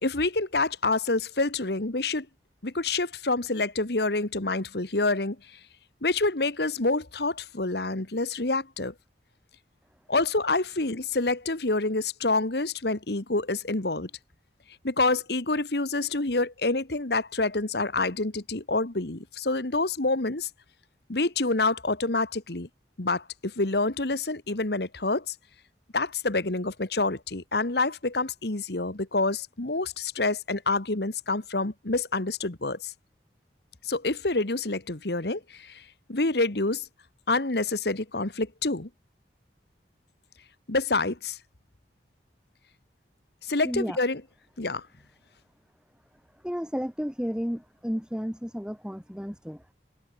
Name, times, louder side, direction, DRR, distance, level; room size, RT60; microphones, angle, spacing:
voice 1, 0.0-2.3 2.6-5.4 6.0-8.9 10.1-14.1 14.8-20.5 21.1-22.7 23.0-25.3 25.9-32.9 33.8-35.8 36.1-36.8 37.3-38.9 40.7-41.4 43.5-44.2 44.6-44.8, left 3 dB, 60° left, 1.6 m, -27 dB
voice 2, 43.6-44.0 46.4-49.6, equal, 5° right, 2.4 m, -32 dB
open air
head